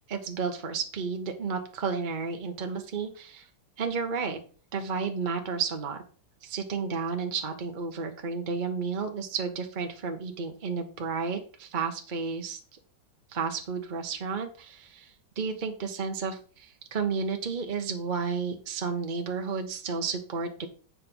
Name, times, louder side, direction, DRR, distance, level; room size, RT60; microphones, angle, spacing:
voice 1, 0.1-3.5 3.8-4.4 4.7-6.0 6.4-12.6 13.3-20.7, right 5 dB, 30° right, 5 dB, 1.0 m, -32 dB
7.6 x 5.3 x 6.1 m, 0.40 s
omnidirectional pair, 2.0 m